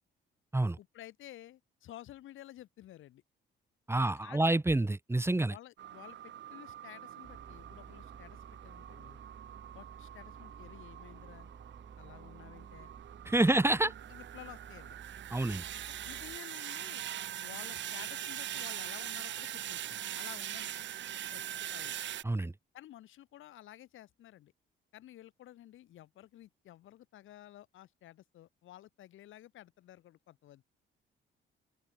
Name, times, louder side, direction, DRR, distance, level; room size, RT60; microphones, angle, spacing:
voice 1, 0.8-3.2 3.9-4.5 5.5-9.2 9.7-11.5 12.0-12.9 13.3-15.0 15.7-17.0 17.4-20.8 21.3-21.5 21.7-22.0 22.7-24.5 24.9-30.6, left 13 dB, 80° left, 8.0 m, -53 dB
voice 2, 3.9-5.5 13.2-13.9 15.3-15.6 22.2-22.5, right 2 dB, 10° right, 1.3 m, -28 dB
sound 1, 5.8-22.2, right 11 dB, 65° right, 1.3 m, -43 dB
Engine, 7.2-16.4, right 6 dB, 40° right, 6.3 m, -53 dB
open air
cardioid pair, 90°, 20 cm